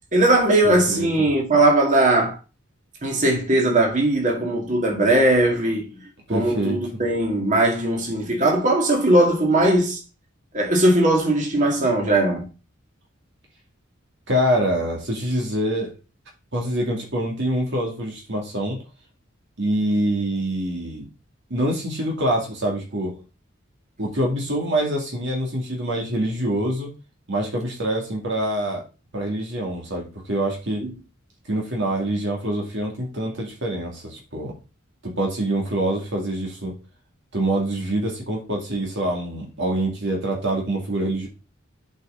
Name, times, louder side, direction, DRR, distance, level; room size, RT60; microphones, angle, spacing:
voice 1, 0.1-2.4 3.0-5.9 6.3-10.0 10.5-12.5 30.8-30.9, right 1 dB, 40° right, 2.4 m, -19 dB
voice 2, 0.6-1.1 6.3-6.8 14.3-15.9 16.5-18.8 19.6-21.1 21.5-23.2 24.0-26.9 27.3-28.8 29.1-30.8 31.5-34.5 35.0-36.7 37.3-41.3, right 1 dB, 60° right, 2.4 m, -25 dB
8.0 x 5.7 x 3.9 m
head